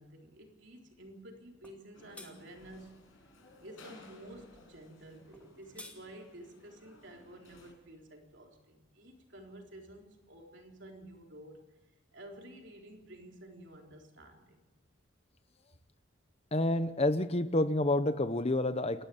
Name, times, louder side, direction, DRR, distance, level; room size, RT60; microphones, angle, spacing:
voice 1, 0.0-3.0 3.6-11.6 12.1-14.7, right 1 dB, 60° right, 1 dB, 4.1 m, -51 dB
sound 1, 1.6-1.8 2.1-2.3 5.3-6.0, left 2 dB, 5° left, 2.4 m, -49 dB
sound 2, 1.9-7.7, left 2 dB, 75° left, 5.9 m, -58 dB
voice 2, 16.5-19.0, left 1 dB, 30° left, 12 dB, 0.8 m, -29 dB
28.5 x 12.0 x 8.7 m, 1.1 s
head